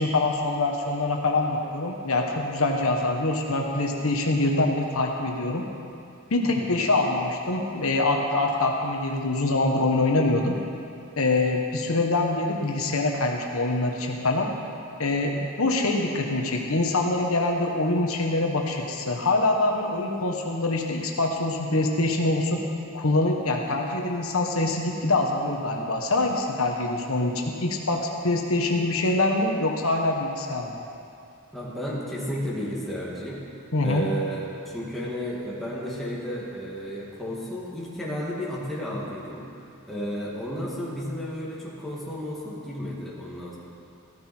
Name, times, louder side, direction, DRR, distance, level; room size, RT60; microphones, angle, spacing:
voice 1, 0.0-5.6 6.3-10.6 11.2-14.5 15.0-22.6 22.9-30.8 33.7-34.1, left 2 dB, 75° left, 1 dB, 1.3 m, -24 dB
voice 2, 31.5-33.4 33.8-39.5 39.9-43.6, equal, ahead, -7 dB, 2.5 m, -33 dB
15.0 x 13.5 x 4.5 m, 2.6 s
head